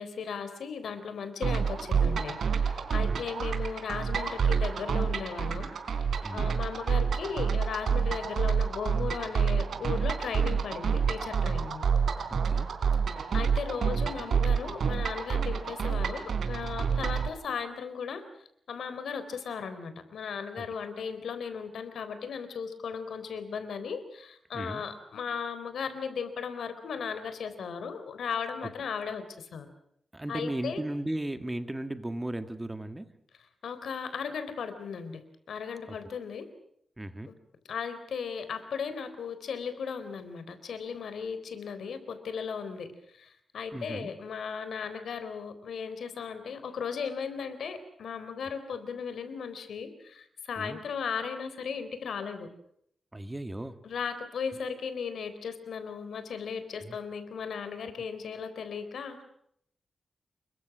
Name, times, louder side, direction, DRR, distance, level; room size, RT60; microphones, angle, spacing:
voice 1, 0.0-6.0 6.3-11.8 13.3-18.2 18.7-29.7 30.3-30.8 33.6-36.5 37.3-37.4 37.7-42.9 43.1-52.5 53.8-59.2, left 6 dB, 85° left, 11 dB, 4.0 m, -36 dB
sound 1, 1.4-17.3, right 6 dB, 75° right, 3.6 m, -28 dB
voice 2, 2.9-3.2 6.2-6.5 12.3-12.7 16.8-17.1 20.6-20.7 24.5-24.8 30.1-33.1 35.9-36.0 37.0-37.3 43.7-44.1 50.6-50.8 53.1-53.8 56.8-57.0, right 1 dB, 10° right, 10 dB, 1.7 m, -36 dB
29.0 x 23.0 x 6.2 m, 0.71 s
wide cardioid pair, 135°, 0 cm